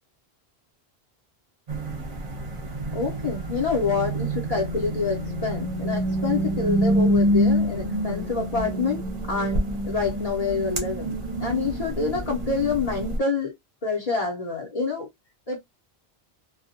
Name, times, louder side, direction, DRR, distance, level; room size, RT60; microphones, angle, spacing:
sound 1, 1.7-13.2, equal, 45° right, 0.7 m, -27 dB
voice 1, 2.9-9.0 9.3-13.5 13.8-15.1 15.5-15.6, left 4 dB, 40° left, 0.8 m, -27 dB
2.3 x 2.1 x 2.7 m
omnidirectional pair, 1.0 m